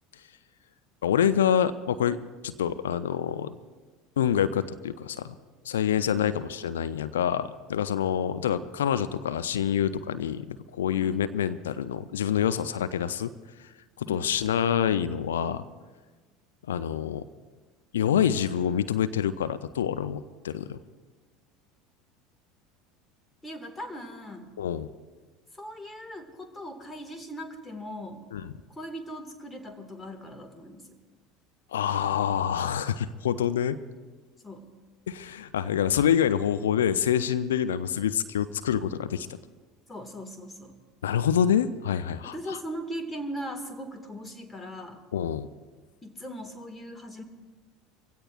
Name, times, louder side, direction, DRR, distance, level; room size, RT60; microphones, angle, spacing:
voice 1, 1.0-2.2 2.4-3.5 4.2-5.4 5.6-13.3 14.0-15.6 16.7-17.2 17.9-20.8 24.6-24.9 28.3-28.5 31.7-33.8 35.1-39.3 41.0-42.6 45.1-45.5, left 9 dB, 75° left, 12 dB, 0.6 m, -26 dB
voice 2, 23.4-24.6 25.5-28.2 28.7-31.0 34.4-34.7 39.9-40.8 42.2-45.0 46.0-47.2, equal, 15° left, 5 dB, 2.0 m, -39 dB
23.5 x 16.5 x 2.5 m, 1.3 s
figure-of-eight pair, 70°, 0 cm